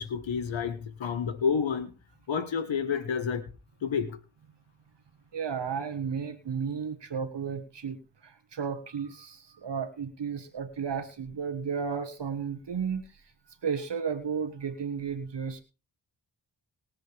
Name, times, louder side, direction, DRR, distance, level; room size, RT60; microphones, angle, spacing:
voice 1, 0.0-1.9 2.3-3.4 3.8-4.2, left 6 dB, 85° left, 10 dB, 1.6 m, -29 dB
voice 2, 5.3-13.2 13.6-15.6, right 6 dB, 65° right, 9 dB, 1.5 m, -33 dB
20.5 x 7.7 x 3.4 m, 0.31 s
cardioid pair, 50°, 45 cm